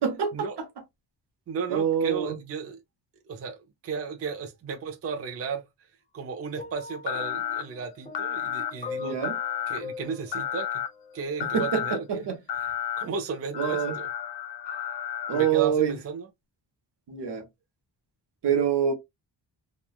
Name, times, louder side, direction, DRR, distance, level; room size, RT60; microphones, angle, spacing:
voice 1, 0.0-0.7 1.7-2.4 9.0-9.3 11.4-12.3 13.6-14.0 15.3-15.9 17.1-17.5 18.4-18.9, right 8 dB, 65° right, 0.9 m, -26 dB
voice 2, 1.5-2.8 3.3-3.6 3.8-5.6 6.1-9.2 9.7-10.8 11.1-12.3 12.6-14.1 15.3-16.3, right 5 dB, 35° right, 0.4 m, -34 dB
sound 1, 6.6-11.7 12.6-12.7, left 4 dB, 15° left, 0.6 m, -42 dB
sound 2, 7.1-7.6 8.1-8.7 9.2-9.8 10.3-10.9 11.4-12.0 12.5-13.0 13.5-15.5, left 10 dB, 70° left, 0.6 m, -31 dB
2.9 x 2.2 x 2.2 m
cardioid pair, 105°, 43 cm